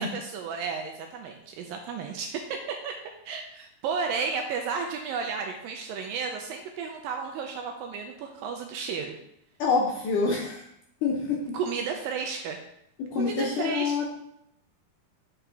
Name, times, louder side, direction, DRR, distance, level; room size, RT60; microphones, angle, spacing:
voice 1, 0.0-2.9 3.3-9.2 11.5-12.6 13.2-14.0, right 5 dB, 80° right, 3 dB, 2.1 m, -33 dB
voice 2, 9.6-10.6 11.0-11.4 13.1-14.0, left 4 dB, 75° left, -1 dB, 2.0 m, -26 dB
6.3 x 6.0 x 3.4 m, 0.75 s
omnidirectional pair, 4.5 m